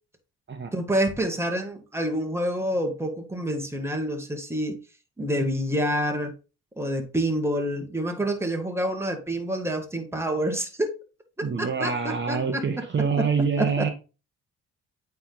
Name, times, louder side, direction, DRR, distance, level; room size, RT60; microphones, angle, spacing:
voice 1, 0.7-4.8 5.2-6.3 6.8-10.9 11.4-12.8 13.2-13.3 13.6-13.9, right 1 dB, 10° right, 1.5 m, -27 dB
voice 2, 11.4-13.9, right 5 dB, 40° right, 1.1 m, -26 dB
8.6 x 3.5 x 3.8 m
cardioid pair, 90°, 30 cm